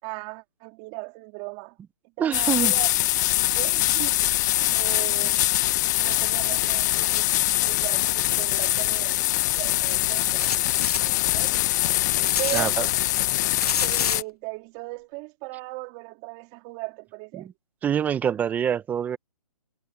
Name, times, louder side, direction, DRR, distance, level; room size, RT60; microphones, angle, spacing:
voice 1, 0.0-1.8 2.2-2.9 3.5-4.2 4.7-5.6 6.0-9.2 9.6-11.5 12.4-12.8 13.8-17.5, right 27 dB, 25° right, 3.3 m, -37 dB
voice 2, 2.2-2.7 12.5-12.9 17.4-17.5 17.8-19.2, right 8 dB, 10° right, 0.6 m, -25 dB
sound 1, 2.3-14.2, left 16 dB, 30° left, 0.7 m, -23 dB
sound 2, 10.4-11.0 12.2-12.6 13.6-14.2, left 6 dB, 80° left, 1.1 m, -28 dB
hypercardioid pair, 150°, 19 cm